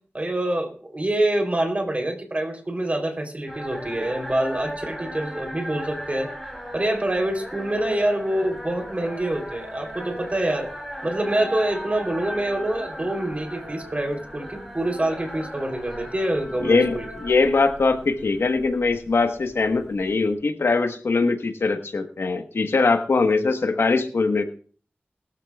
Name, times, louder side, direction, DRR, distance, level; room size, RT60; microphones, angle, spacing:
voice 1, 0.1-6.3 6.7-10.7 11.0-17.1, right 1 dB, 35° right, 4 dB, 3.5 m, -26 dB
sound 1, 3.5-20.3, equal, ahead, 5.9 m, -37 dB
voice 2, 16.6-24.4, left 3 dB, 85° left, 6 dB, 1.3 m, -22 dB
21.0 x 13.0 x 2.4 m, 0.43 s
wide cardioid pair, 80°, 4 cm